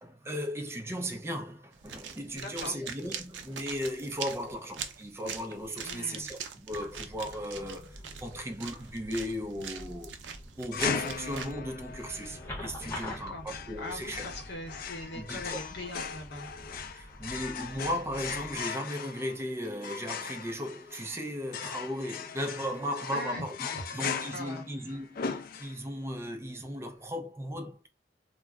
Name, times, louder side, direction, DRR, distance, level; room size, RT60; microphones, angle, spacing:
voice 1, 0.0-10.1 10.6-14.3 15.1-15.6 16.9-27.9, equal, 15° right, 0.5 m, -36 dB
sound 1, 1.7-11.5, right 7 dB, 80° right, 0.4 m, -42 dB
voice 2, 2.3-2.8 5.8-6.3 12.8-13.5 13.8-16.5 23.1-23.5 23.7-24.1 24.3-24.6, left 1 dB, 70° left, 0.8 m, -41 dB
sound 2, 6.7-18.6, left 1 dB, 15° left, 0.9 m, -46 dB
sound 3, 10.7-26.1, left 6 dB, 55° left, 0.4 m, -38 dB
2.3 x 2.0 x 3.4 m
head